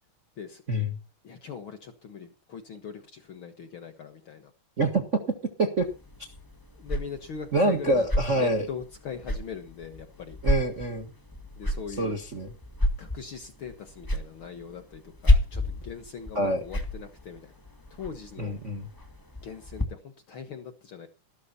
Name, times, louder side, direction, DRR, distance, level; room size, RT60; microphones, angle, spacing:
voice 1, 1.2-4.5 6.7-10.4 11.6-12.1 13.0-17.5 17.9-18.6 19.4-21.1, left 6 dB, 50° left, 8 dB, 1.7 m, -41 dB
voice 2, 4.8-5.2 5.6-5.9 7.5-8.7 10.4-11.1 12.0-12.5 16.3-16.6 18.4-18.8, right 1 dB, 35° right, 4 dB, 1.4 m, -25 dB
sound 1, 5.8-19.8, left 1 dB, 10° left, 1.1 m, -31 dB
13.5 x 13.0 x 4.2 m, 0.31 s
omnidirectional pair, 3.6 m